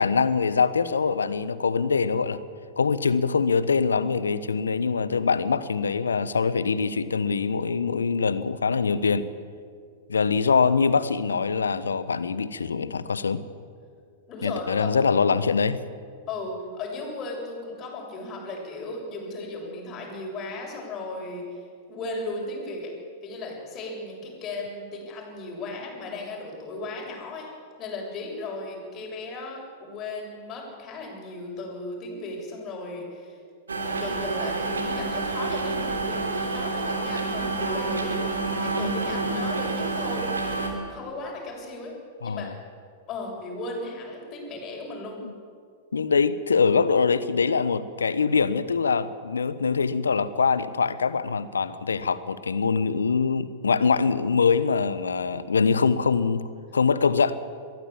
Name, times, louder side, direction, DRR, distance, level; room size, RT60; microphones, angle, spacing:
voice 1, 0.0-2.4 2.8-9.3 10.1-13.4 14.4-15.8 42.2-42.5 45.2-45.3 45.9-56.5 56.7-57.4, left 5 dB, 80° left, 15 dB, 1.1 m, -23 dB
voice 2, 14.3-14.9 16.3-21.6 21.9-22.9 23.2-27.5 27.8-33.4 33.9-40.3 40.9-42.0 42.2-42.6 43.1-45.2, left 2 dB, 35° left, 0 dB, 7.5 m, -36 dB
sound 1, 33.7-40.7, right 3 dB, 80° right, 3.3 m, -28 dB
22.5 x 15.0 x 8.7 m, 2.2 s
hypercardioid pair, 100°, 0 cm